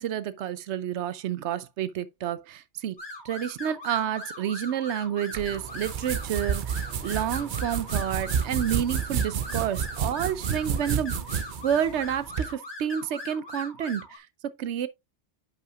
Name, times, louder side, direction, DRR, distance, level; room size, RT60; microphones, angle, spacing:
voice 1, 0.0-3.0 3.2-14.9, right 9 dB, 85° right, 0.9 m, -30 dB
sound 1, 3.0-14.2, left 2 dB, 20° left, 1.8 m, -41 dB
sound 2, 5.3-12.5, right 7 dB, 55° right, 0.7 m, -30 dB
10.5 x 5.6 x 2.3 m
omnidirectional pair, 1.2 m